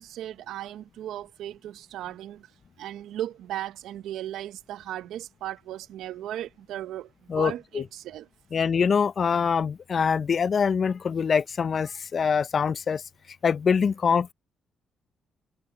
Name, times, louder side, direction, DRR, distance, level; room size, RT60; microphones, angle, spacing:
voice 1, 0.0-2.5 2.8-8.3, right 12 dB, 85° right, 0.7 m, -36 dB
voice 2, 7.3-7.8 8.5-13.0 13.4-14.3, left 6 dB, 45° left, 0.4 m, -24 dB
cardioid pair, 90°, 0 cm